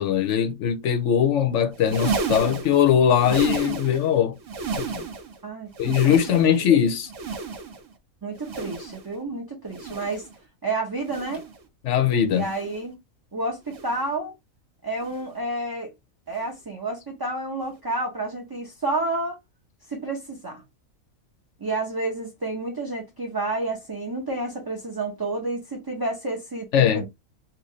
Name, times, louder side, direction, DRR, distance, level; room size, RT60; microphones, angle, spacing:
voice 1, 0.0-4.3 4.8-4.9 5.8-7.1 11.9-12.4 26.7-27.0, left 9 dB, 65° left, 0.8 m, -20 dB
sound 1, 1.7-4.1 4.4-5.4 5.7-6.7 7.1-7.9 8.4-9.1 9.7-10.3 11.0-11.6 12.3-12.9 13.7-14.1 15.0-15.3 16.3-16.5 17.7-17.8, right 4 dB, 65° right, 1.3 m, -32 dB
voice 2, 5.4-6.6 8.2-10.3 10.6-11.5 12.3-13.0 13.3-14.3 14.8-15.9 16.3-19.4 19.9-20.6 21.6-27.1, right 2 dB, 25° right, 0.6 m, -30 dB
4.0 x 2.4 x 3.1 m
omnidirectional pair, 1.4 m